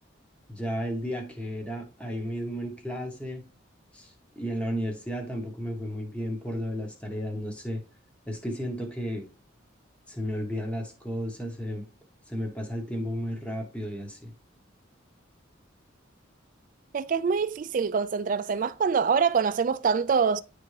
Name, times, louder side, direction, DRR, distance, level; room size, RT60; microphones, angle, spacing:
voice 1, 0.5-3.4 3.9-7.8 8.3-9.3 10.1-11.9 12.3-14.3, equal, 5° left, 1.0 m, -33 dB
voice 2, 16.9-20.4, right 6 dB, 40° right, 0.3 m, -25 dB
10.0 x 3.4 x 3.2 m
head